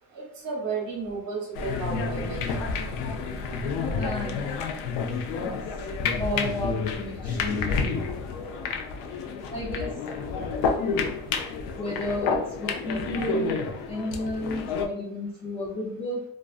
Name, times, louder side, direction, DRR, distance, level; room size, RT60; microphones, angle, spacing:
voice 1, 0.2-2.4, right 4 dB, 40° right, -3 dB, 0.9 m, -33 dB
sound 1, 1.6-14.9, left 4 dB, 80° left, 0.5 m, -29 dB
voice 2, 3.9-4.5 5.4-5.9 6.2-7.8 9.5-9.9 11.8-13.6 13.9-16.2, left 1 dB, 15° left, -3 dB, 0.4 m, -32 dB
2.4 x 2.2 x 2.4 m, 0.68 s
supercardioid pair, 85°, 43 cm